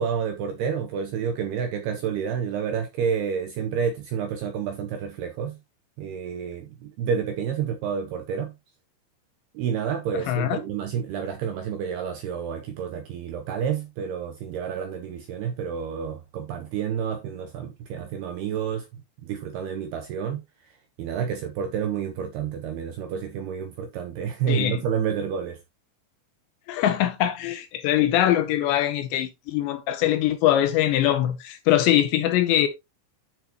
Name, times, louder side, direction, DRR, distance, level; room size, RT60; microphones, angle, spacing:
voice 1, 0.0-5.6 6.0-8.5 9.5-18.9 19.2-20.4 21.0-25.6, right 7 dB, 85° right, 2.3 m, -29 dB
voice 2, 10.3-10.6 24.5-24.8 26.7-32.7, left 12 dB, 80° left, 2.6 m, -22 dB
11.0 x 6.1 x 3.0 m
omnidirectional pair, 5.9 m